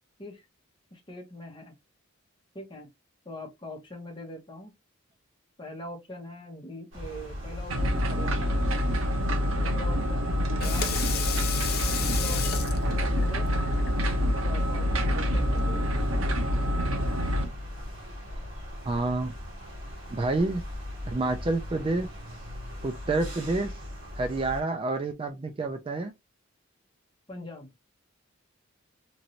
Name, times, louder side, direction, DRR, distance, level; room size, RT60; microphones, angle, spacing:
voice 1, 0.9-1.8 2.5-2.9 3.2-4.7 5.6-8.5 9.5-10.9 12.0-13.5 14.4-15.8 27.3-27.7, left 1 dB, 25° left, 0.9 m, -42 dB
sound 1, 6.9-24.6, left 1 dB, 65° right, 1.5 m, -40 dB
sound 2, 7.7-17.5, equal, 85° right, 0.8 m, -26 dB
Water tap faucet / Sink (filling or washing), 10.4-15.9, left 7 dB, 50° left, 0.6 m, -35 dB
voice 2, 18.8-19.3 20.1-20.6 21.1-22.1 22.8-23.7 24.2-26.1, right 2 dB, 25° right, 0.3 m, -28 dB
3.0 x 2.5 x 2.8 m
head